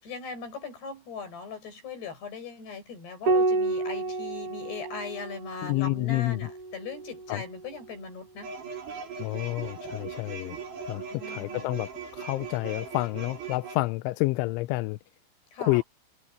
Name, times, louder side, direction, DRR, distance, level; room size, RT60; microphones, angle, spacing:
voice 1, 0.0-8.5 11.1-11.7 15.5-15.8, left 4 dB, 55° left, 9.1 m, -39 dB
Piano, 3.3-8.1 9.7-10.6, right 3 dB, 75° right, 1.3 m, -31 dB
voice 2, 5.6-6.4 7.3-7.4 9.2-10.6 10.9-15.0 15.6-15.8, left 20 dB, 80° left, 2.9 m, -29 dB
sound 1, 8.4-13.8, right 5 dB, 55° right, 8.2 m, -39 dB
omnidirectional pair, 5.7 m